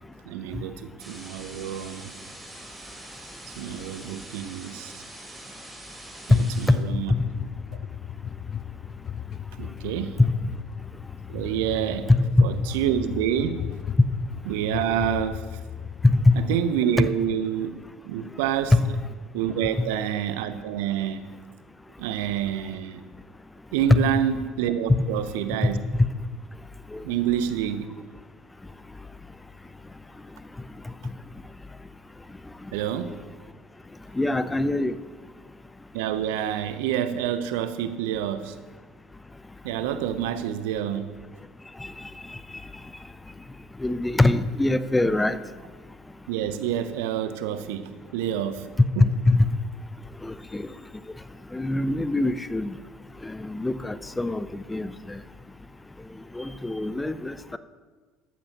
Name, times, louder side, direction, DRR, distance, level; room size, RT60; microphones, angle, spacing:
voice 1, 0.3-2.1 3.6-5.0 6.3-7.1 9.6-10.2 11.3-12.1 12.4-13.7 14.5-15.5 16.4-18.7 19.3-21.2 22.0-23.0 23.7-25.8 27.0-27.9 32.7-33.2 35.9-38.5 39.6-41.2 46.3-48.7 49.0-49.1, right 10 dB, 70° right, 12 dB, 0.7 m, -28 dB
sound 1, 1.0-6.7, right 1 dB, 10° right, 4.2 m, -44 dB
sound 2, 6.7-16.5, left 9 dB, 45° left, 0.4 m, -36 dB
voice 2, 34.1-34.9 43.8-45.4 49.3-49.5 50.2-50.7 51.5-52.8 53.2-55.2 56.4-57.6, left 2 dB, 10° left, 13 dB, 0.6 m, -23 dB
14.0 x 13.5 x 3.0 m, 1.4 s
hypercardioid pair, 65°, 0 cm